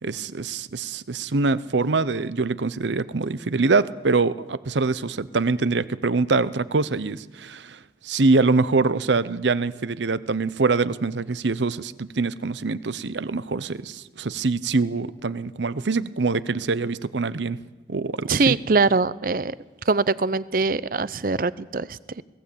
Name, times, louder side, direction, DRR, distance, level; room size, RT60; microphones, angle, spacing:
voice 1, 0.0-17.6 17.9-18.5, right 3 dB, 80° right, 16 dB, 0.8 m, -24 dB
voice 2, 18.3-19.5 19.9-22.2, right 4 dB, 50° right, 18 dB, 0.6 m, -22 dB
18.5 x 16.5 x 8.5 m, 1.2 s
head